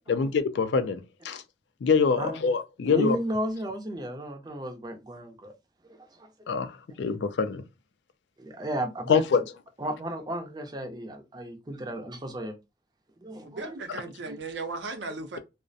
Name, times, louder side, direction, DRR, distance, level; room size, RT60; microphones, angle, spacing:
voice 1, 0.1-1.4 1.8-3.2 6.5-7.6 9.1-9.4, left 5 dB, 75° left, 0.4 m, -25 dB
voice 2, 2.2-2.5 2.9-5.5 5.8-6.3 7.1-7.2 8.4-9.2 9.8-12.6 13.2-13.8 14.2-14.4, right 1 dB, 25° right, 0.5 m, -34 dB
voice 3, 13.4-15.4, right 3 dB, 80° right, 0.6 m, -36 dB
2.3 x 2.0 x 2.5 m
head